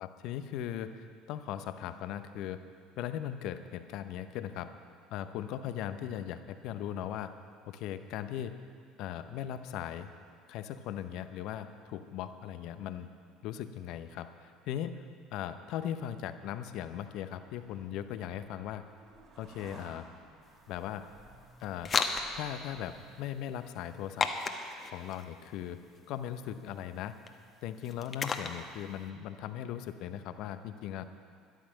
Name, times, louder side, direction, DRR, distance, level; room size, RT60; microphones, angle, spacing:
voice 1, 0.0-2.6 3.0-4.7 5.1-7.3 7.7-8.6 9.0-10.1 10.5-13.1 13.4-15.0 15.3-18.8 19.4-20.1 20.7-21.0 21.6-21.9 22.3-24.3 24.8-25.8 26.1-27.1 27.6-31.1, left 10 dB, 60° left, 10 dB, 0.8 m, -38 dB
sound 1, 16.3-23.6, right 3 dB, 45° right, 3.5 m, -57 dB
sound 2, 20.4-29.1, left 5 dB, 35° left, 1.1 m, -37 dB
13.0 x 11.5 x 6.3 m, 2.1 s
hypercardioid pair, 65°, 0 cm